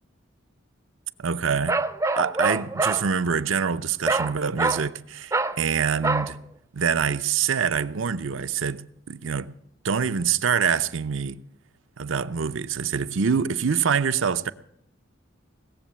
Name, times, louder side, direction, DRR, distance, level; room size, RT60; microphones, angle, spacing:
voice 1, 1.2-1.8 2.1-6.4 6.7-8.8 9.1-9.5 9.8-11.4 12.0-14.5, right 6 dB, 80° right, 0.6 m, -25 dB
Bark, 1.7-3.1 4.1-4.3 4.6-4.9 5.3-5.6 6.0-6.3, right 3 dB, 15° right, 0.5 m, -25 dB
19.0 x 7.6 x 8.4 m
head